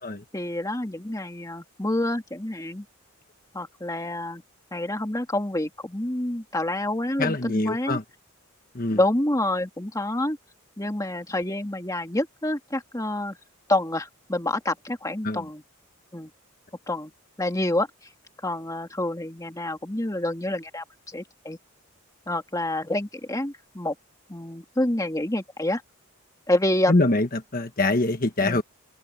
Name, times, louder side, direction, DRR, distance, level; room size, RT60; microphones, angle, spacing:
voice 1, 0.3-2.9 3.5-4.4 4.7-8.0 8.9-10.4 10.8-13.4 13.7-15.6 16.1-16.3 16.9-17.1 17.4-17.9 18.4-21.6 22.3-24.0 24.3-25.8 26.5-27.1 28.4-28.6, left 1 dB, 15° left, 1.8 m, -27 dB
voice 2, 7.2-8.0 8.7-9.0 15.2-15.5 26.9-28.6, left 2 dB, 40° left, 1.3 m, -24 dB
head